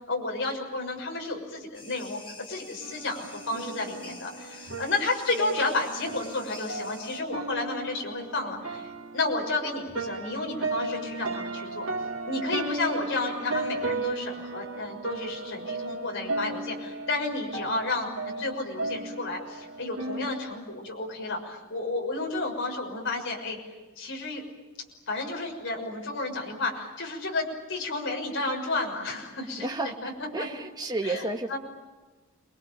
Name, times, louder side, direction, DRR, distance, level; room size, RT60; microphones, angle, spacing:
voice 1, 0.1-2.2 2.5-11.9 12.2-18.1 18.4-23.6 24.0-24.4 25.1-29.7 30.0-30.5 31.0-31.6, left 2 dB, 60° left, 1 dB, 6.2 m, -31 dB
sound 1, 1.7-7.2, left 3 dB, 25° left, 4.4 m, -47 dB
sound 2, 2.8-20.5, right 2 dB, 75° right, 2.7 m, -35 dB
voice 2, 29.6-31.6, right 2 dB, 20° right, 4 dB, 1.7 m, -32 dB
27.5 x 23.0 x 9.0 m, 1.2 s
head